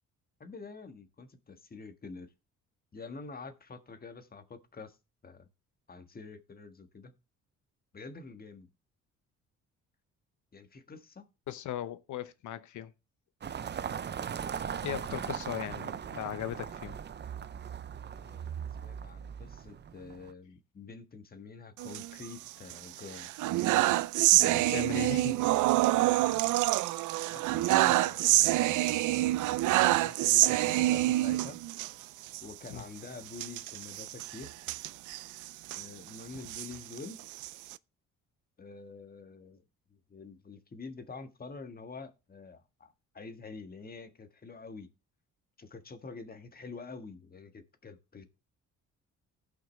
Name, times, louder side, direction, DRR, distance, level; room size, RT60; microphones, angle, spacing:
voice 1, 0.4-2.3 2.9-4.9 5.2-5.5 5.9-7.1 7.9-8.7 10.5-11.3 13.8-14.1 18.1-23.3 24.5-25.2 25.8-26.7 27.3-29.4 29.8-31.6 32.4-34.5 35.8-37.2 38.6-39.6 39.9-44.9 45.6-48.2, left 4 dB, 30° left, 1.6 m, -47 dB
voice 2, 11.5-12.9 14.8-17.0 24.3-25.3 32.7-32.8, left 12 dB, 75° left, 1.0 m, -38 dB
sound 1, 13.4-20.3, right 8 dB, 35° right, 0.6 m, -39 dB
sound 2, 21.8-22.7 23.1-31.9 32.3-32.4 32.7-32.8 33.3-35.9 36.3-37.7, right 16 dB, 80° right, 0.5 m, -27 dB
17.0 x 5.9 x 3.3 m
cardioid pair, 90°, 30 cm